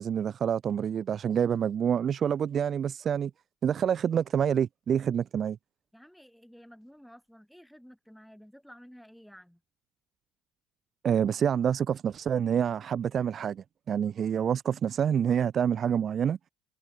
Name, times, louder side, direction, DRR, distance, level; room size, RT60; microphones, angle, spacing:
voice 1, 0.0-3.3 3.6-5.6 11.0-16.4, right 8 dB, 40° right, 0.4 m, -27 dB
voice 2, 5.9-9.6, equal, ahead, 6.1 m, -52 dB
cardioid pair, 110°, 0 cm